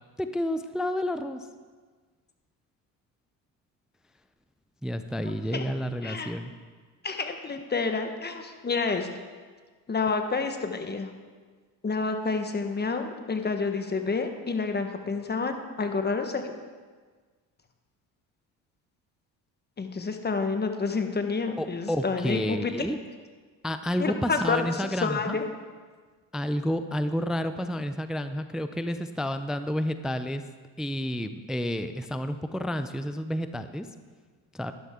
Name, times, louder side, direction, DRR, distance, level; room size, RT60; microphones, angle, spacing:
voice 1, 0.2-1.5 4.8-6.5 21.6-23.0 23.6-25.4 26.3-30.4 30.8-33.9 34.5-34.7, equal, ahead, 10 dB, 0.4 m, -30 dB
voice 2, 5.2-5.6 6.0-6.3 7.0-9.1 9.9-11.1 11.8-16.5 19.8-22.7 24.0-25.4, left 4 dB, 20° left, 6 dB, 1.3 m, -29 dB
11.5 x 11.0 x 3.7 m, 1.5 s
supercardioid pair, 80°, 44 cm